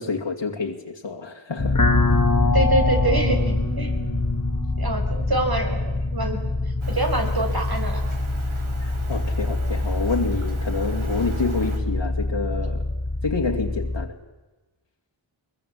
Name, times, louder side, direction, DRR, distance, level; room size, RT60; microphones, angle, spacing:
voice 1, 0.0-1.8 8.8-12.8 13.2-14.2, left 4 dB, 65° left, 1 dB, 2.5 m, -28 dB
sound 1, 1.6-14.0, left 2 dB, 40° left, 2.2 m, -24 dB
voice 2, 2.5-3.9 4.8-6.4 6.9-8.1, right 2 dB, 50° right, 4 dB, 5.4 m, -25 dB
Rain, 6.8-11.8, right 3 dB, 85° right, 4.1 m, -40 dB
22.0 x 22.0 x 8.5 m, 1.1 s
wide cardioid pair, 70°, 47 cm